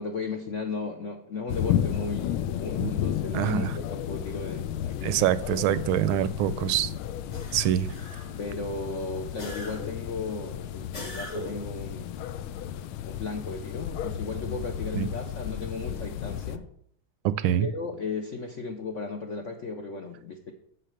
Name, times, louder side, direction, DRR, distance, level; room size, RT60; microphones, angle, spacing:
voice 1, 0.0-5.3 5.7-6.9 8.4-12.3 12.7-16.7 17.6-20.5, left 4 dB, 60° left, 0.7 m, -35 dB
sound 1, 1.5-16.6, left 10 dB, 80° left, 1.4 m, -33 dB
voice 2, 3.3-3.7 5.0-6.9 7.5-7.9 14.9-15.1 17.2-17.7, right 11 dB, 80° right, 1.3 m, -25 dB
sound 2, 7.3-8.5 9.4-10.1 10.9-11.8, equal, 35° left, 1.9 m, -40 dB
7.7 x 6.6 x 6.5 m
omnidirectional pair, 2.3 m